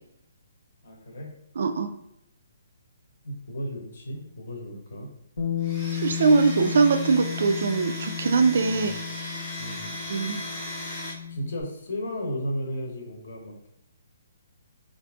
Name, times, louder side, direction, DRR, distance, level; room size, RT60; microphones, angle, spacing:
voice 1, 0.8-1.4 3.2-5.1 8.7-9.0 9.6-9.9 11.3-13.7, equal, 50° left, 1 dB, 0.9 m, -34 dB
voice 2, 1.6-1.9 5.9-9.0 10.1-10.4, right 4 dB, 55° right, 7 dB, 0.3 m, -22 dB
Bass guitar, 5.4-11.6, left 8 dB, 80° left, 0.9 m, -33 dB
Domestic sounds home sounds, 5.6-11.1, left 1 dB, 5° left, 0.8 m, -37 dB
2.6 x 2.5 x 3.4 m, 0.79 s
hypercardioid pair, 175°, 0 cm